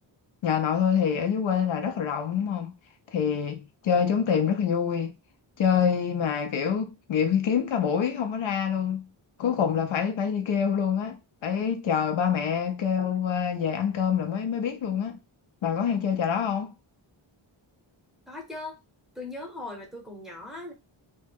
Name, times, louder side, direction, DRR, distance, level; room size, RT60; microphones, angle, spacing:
voice 1, 0.4-2.7 3.1-5.1 5.6-9.1 9.4-15.2 15.6-16.7, left 7 dB, 70° left, 0.6 m, -26 dB
voice 2, 18.3-18.8 19.1-20.7, left 2 dB, ahead, 0.7 m, -39 dB
2.3 x 2.1 x 3.3 m
wide cardioid pair, 120°, 49 cm